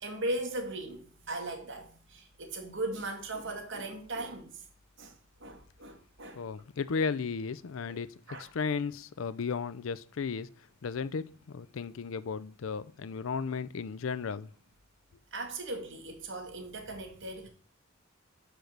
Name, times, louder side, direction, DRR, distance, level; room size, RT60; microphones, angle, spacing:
voice 1, 0.0-4.7 5.0-6.4 7.9-8.0 8.3-8.5 15.3-17.5, right 2 dB, 65° right, 1.8 m, -38 dB
voice 2, 6.4-8.1 8.4-10.5 10.8-14.5, left 5 dB, 75° left, 0.5 m, -34 dB
5.9 x 5.1 x 6.5 m
head